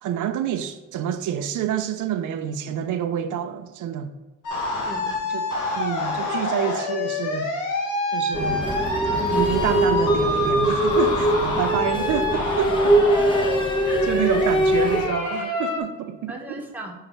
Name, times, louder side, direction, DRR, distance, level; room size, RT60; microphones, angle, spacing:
voice 1, 0.0-4.1 5.3-5.4 5.7-7.5 8.1-8.6 9.3-13.0 14.0-16.6, right 9 dB, 80° right, 0.7 m, -27 dB
sound 1, 4.4-15.8, left 3 dB, 90° left, 1.7 m, -27 dB
voice 2, 4.8-5.3 9.1-9.5 13.1-13.4 13.8-14.1 16.3-16.9, right 1 dB, 5° right, 1.5 m, -36 dB
sound 2, 8.3-15.1, right 1 dB, 15° left, 1.2 m, -22 dB
5.8 x 4.9 x 5.6 m
cardioid pair, 90°, 30 cm